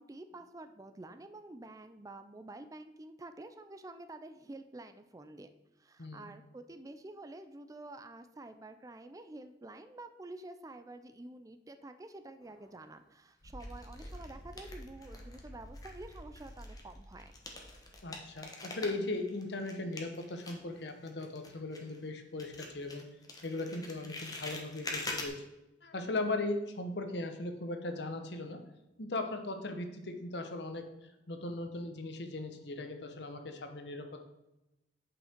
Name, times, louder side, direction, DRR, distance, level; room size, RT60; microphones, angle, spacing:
voice 1, 0.0-5.5 5.8-17.3, right 2 dB, 20° right, 9 dB, 0.4 m, -49 dB
voice 2, 6.0-6.3 18.0-23.1 23.4-25.4 25.8-28.6 29.0-30.9 31.3-34.2, left 2 dB, 65° left, 7 dB, 1.0 m, -38 dB
sound 1, 12.4-13.0 13.6-15.5 15.7-22.1 22.4-25.3, left 2 dB, 20° left, 1.1 m, -45 dB
sound 2, 13.4-18.4, equal, 80° left, 2.2 m, -50 dB
8.3 x 5.7 x 4.5 m, 0.94 s
head